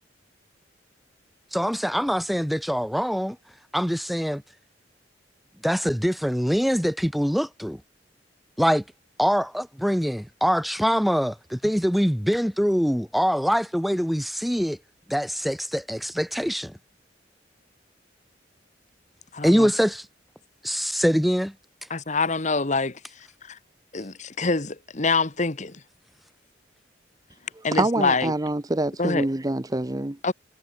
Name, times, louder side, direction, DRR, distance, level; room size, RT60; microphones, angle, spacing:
voice 1, 1.5-3.4 3.7-4.4 5.6-7.8 8.6-8.8 9.2-14.8 15.1-16.8 19.4-20.1 20.6-21.5, equal, ahead, 3.6 m, -24 dB
voice 2, 19.3-19.7 21.9-23.6 23.9-25.8 27.6-28.3 29.0-29.3 30.2-30.3, left 3 dB, 40° left, 1.5 m, -26 dB
voice 3, 27.7-30.2, right 2 dB, 20° right, 0.8 m, -25 dB
head